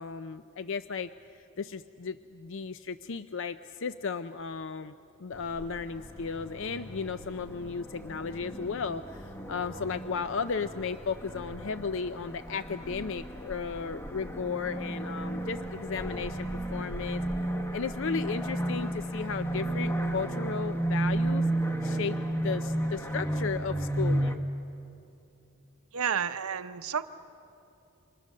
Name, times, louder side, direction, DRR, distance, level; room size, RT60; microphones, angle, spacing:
voice 1, 0.0-4.9 5.2-17.2 17.7-21.5 21.8-24.5, left 5 dB, 60° left, 12 dB, 0.5 m, -35 dB
sound 1, 5.3-24.3, right 1 dB, 10° left, 1.2 m, -33 dB
voice 2, 25.9-27.0, right 7 dB, 75° right, 10 dB, 0.8 m, -30 dB
29.0 x 26.0 x 6.5 m, 2.9 s
head